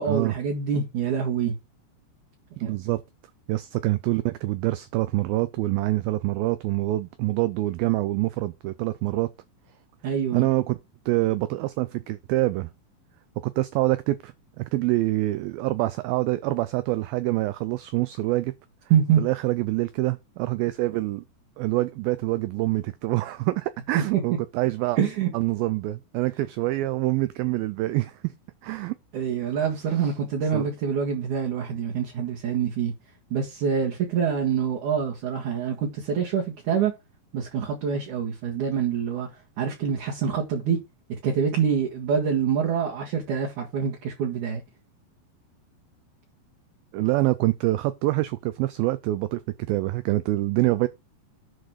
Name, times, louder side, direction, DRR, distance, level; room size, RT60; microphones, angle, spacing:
voice 1, 0.0-1.5 2.6-2.8 10.0-10.5 18.9-19.2 25.0-25.3 29.1-32.9 33.3-36.9 37.3-39.3 39.6-40.8 41.2-44.6, right 7 dB, 55° right, 2.9 m, -25 dB
voice 2, 2.6-3.0 3.5-9.3 10.3-10.8 11.1-12.7 13.4-18.5 19.2-21.2 21.6-25.0 25.3-28.3 28.6-29.0 30.0-30.1 30.5-30.7 46.9-49.4 49.7-50.9, right 18 dB, 85° right, 2.1 m, -26 dB
11.5 x 4.1 x 4.7 m
omnidirectional pair, 4.8 m